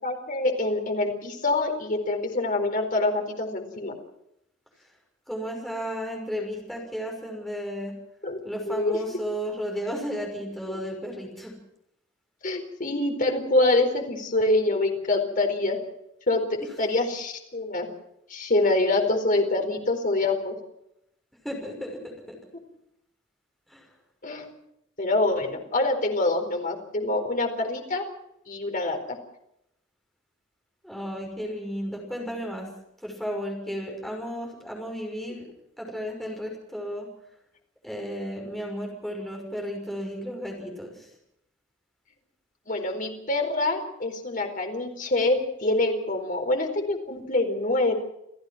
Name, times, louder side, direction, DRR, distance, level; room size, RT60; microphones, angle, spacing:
voice 1, 0.0-3.9 8.2-8.4 8.7-9.0 10.7-10.8 12.4-15.8 16.3-17.9 18.3-20.5 24.2-24.5 25.0-28.0 28.5-29.2 42.7-47.9, left 2 dB, 45° left, 4 dB, 4.4 m, -25 dB
voice 2, 5.3-8.0 8.4-11.5 16.6-16.7 19.5-19.6 21.4-22.4 23.7-23.9 30.8-32.7 33.0-35.5 35.8-37.1 37.8-41.1, equal, ahead, 0 dB, 5.9 m, -34 dB
29.0 x 15.5 x 6.0 m, 0.80 s
head